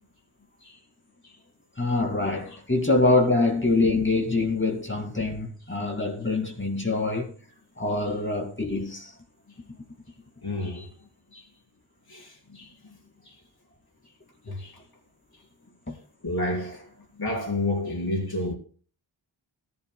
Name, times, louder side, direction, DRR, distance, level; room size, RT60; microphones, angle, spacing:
voice 1, 1.8-7.3 7.8-9.1 15.9-16.0, left 2 dB, 25° left, 2.4 m, -25 dB
voice 2, 9.5-9.8 10.1-10.2 10.4-11.6 12.1-13.4 14.0-14.1 14.4-14.9 15.3-15.5 15.9-18.5, left 1 dB, 50° left, 4.5 m, -33 dB
18.5 x 11.0 x 2.3 m
wide cardioid pair, 100°, 48 cm